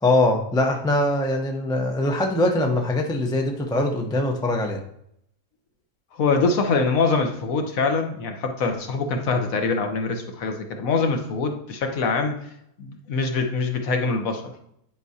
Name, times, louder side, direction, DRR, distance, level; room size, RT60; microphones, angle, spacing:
voice 1, 0.0-4.8, left 1 dB, 5° left, 2 dB, 0.4 m, -22 dB
voice 2, 6.2-12.4 12.8-14.5, left 4 dB, 70° left, 5 dB, 1.3 m, -24 dB
9.7 x 4.7 x 2.7 m, 0.75 s
omnidirectional pair, 1.5 m